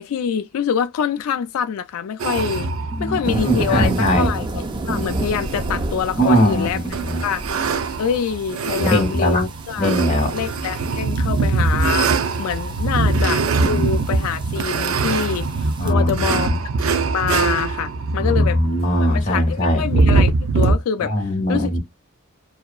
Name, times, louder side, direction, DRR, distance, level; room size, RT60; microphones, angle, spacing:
voice 1, 0.0-2.7 3.0-6.8 7.2-7.4 8.0-9.9 10.3-12.1 12.4-16.5 17.1-18.6 19.0-21.8, left 7 dB, 85° left, 0.3 m, -25 dB
sound 1, 2.2-20.8, right 3 dB, 75° right, 0.5 m, -23 dB
voice 2, 2.9-4.3 6.2-7.2 8.8-9.4 9.8-10.3 13.0-13.9 15.8-16.5 18.2-19.8 21.0-21.8, equal, 35° left, 1.0 m, -20 dB
sound 2, 3.2-15.9, right 2 dB, 20° right, 0.4 m, -31 dB
2.8 x 2.3 x 2.2 m
head